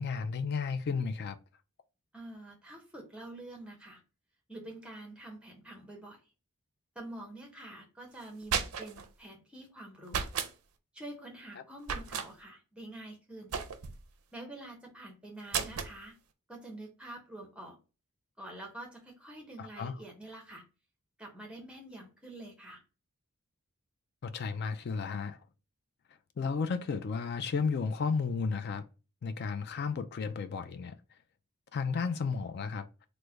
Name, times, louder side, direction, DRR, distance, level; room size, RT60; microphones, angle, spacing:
voice 1, 0.0-1.4 19.6-19.9 24.2-25.4 26.4-28.9 29.2-31.0 31.7-33.1, left 5 dB, 45° left, 0.3 m, -33 dB
voice 2, 2.1-4.0 4.5-6.2 6.9-10.3 10.9-13.6 14.3-16.2 16.5-17.8 18.4-20.6 21.2-22.8, right 1 dB, 5° right, 0.7 m, -47 dB
sound 1, 8.2-9.1 10.1-10.5 11.8-12.3 13.5-14.0 15.5-16.0, right 7 dB, 75° right, 0.4 m, -34 dB
3.1 x 2.1 x 3.4 m
head